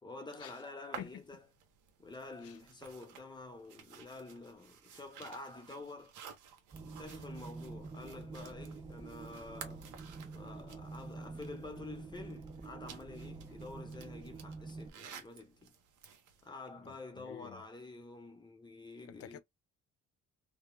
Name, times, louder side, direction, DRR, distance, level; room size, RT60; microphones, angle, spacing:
voice 1, 0.0-1.4 2.0-6.1 6.8-9.9 10.3-15.7 16.4-19.4, left 3 dB, 15° left, 0.9 m, -48 dB
sound 1, 0.9-16.5, right 8 dB, 80° right, 0.7 m, -54 dB
sound 2, 6.7-14.9, right 3 dB, 15° right, 0.3 m, -47 dB
voice 2, 16.8-17.6 19.1-19.4, left 11 dB, 50° left, 0.4 m, -49 dB
2.2 x 2.1 x 3.1 m
cardioid pair, 90°, 30 cm